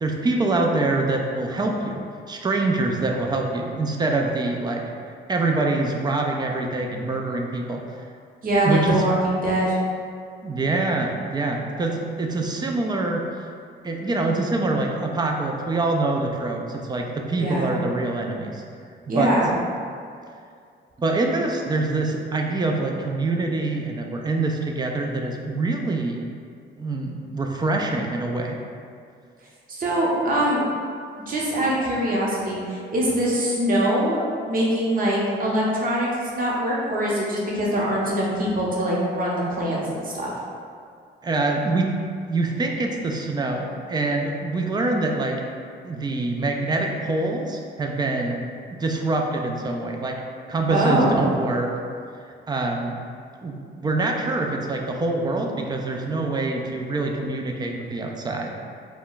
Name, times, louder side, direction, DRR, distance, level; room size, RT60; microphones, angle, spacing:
voice 1, 0.0-2.0 2.3-4.9 5.3-7.8 8.6-9.0 10.4-13.2 13.8-18.6 19.1-19.3 21.0-26.2 26.8-28.6 41.2-41.9 42.3-45.4 45.8-48.4 48.7-50.2 50.5-51.7 52.5-53.0 53.4-58.5, right 2 dB, 20° right, 2 dB, 0.3 m, -25 dB
voice 2, 8.4-9.8 17.3-17.8 19.1-19.5 29.7-30.6 31.3-34.2 34.5-36.1 36.3-40.3 50.7-51.3, right 1 dB, 45° right, -5 dB, 0.8 m, -23 dB
2.2 x 2.1 x 3.8 m, 2.3 s
cardioid pair, 90°, 20 cm